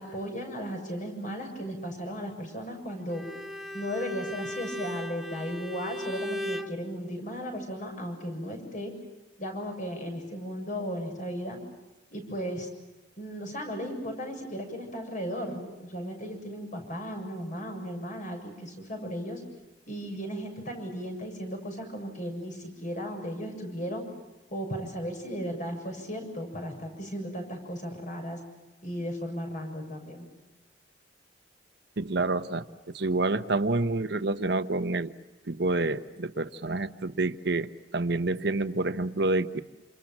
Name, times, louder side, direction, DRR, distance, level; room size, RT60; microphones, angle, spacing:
voice 1, 0.0-3.2 3.7-8.9 9.4-11.6 12.1-12.7 13.2-19.4 19.9-24.0 24.5-28.4 28.8-30.3, equal, 45° left, 4 dB, 7.2 m, -36 dB
Bowed string instrument, 3.1-6.8, left 1 dB, ahead, 1.3 m, -36 dB
voice 2, 32.0-35.1 35.5-39.6, right 2 dB, 60° right, 10 dB, 1.1 m, -28 dB
29.0 x 27.5 x 7.4 m, 1.1 s
head